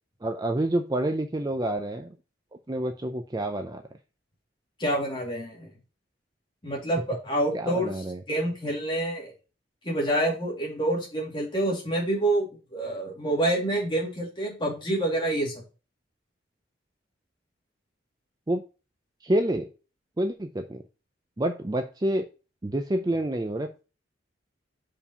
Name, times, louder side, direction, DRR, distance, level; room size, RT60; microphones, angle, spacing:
voice 1, 0.2-2.2 2.7-3.8 7.5-8.2 18.5-18.6 19.2-19.7 20.2-20.8 21.4-22.2 22.6-23.8, right 1 dB, 20° right, 6 dB, 0.5 m, -28 dB
voice 2, 4.8-5.8 6.6-7.9 8.3-9.3 9.8-15.5, right 1 dB, 25° left, -2 dB, 2.5 m, -27 dB
5.4 x 4.8 x 5.4 m, 0.33 s
head